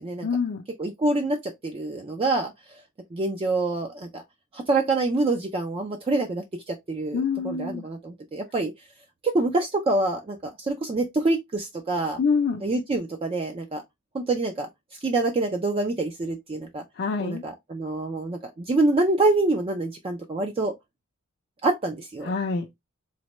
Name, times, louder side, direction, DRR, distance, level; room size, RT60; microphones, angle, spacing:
voice 1, 0.2-0.6 7.1-7.9 12.2-12.6 17.0-17.4 22.2-22.7, left 5 dB, 50° left, 0.4 m, -26 dB
voice 2, 0.8-2.5 3.1-4.2 4.5-8.7 9.2-12.2 12.6-13.8 14.1-14.7 15.0-16.8 17.2-20.7 21.6-22.3, right 2 dB, 25° right, 0.4 m, -26 dB
4.0 x 2.1 x 3.0 m
head